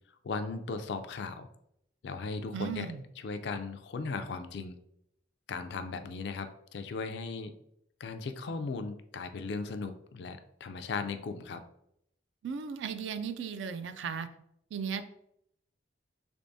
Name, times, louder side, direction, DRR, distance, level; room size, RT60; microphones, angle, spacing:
voice 1, 0.2-1.5 2.0-2.9 3.2-4.8 5.5-7.5 8.0-11.6, left 4 dB, 60° left, 9 dB, 0.3 m, -37 dB
voice 2, 2.5-3.0 12.4-14.3 14.7-15.0, right 6 dB, 70° right, 11 dB, 0.3 m, -36 dB
3.4 x 3.4 x 2.6 m, 0.75 s
head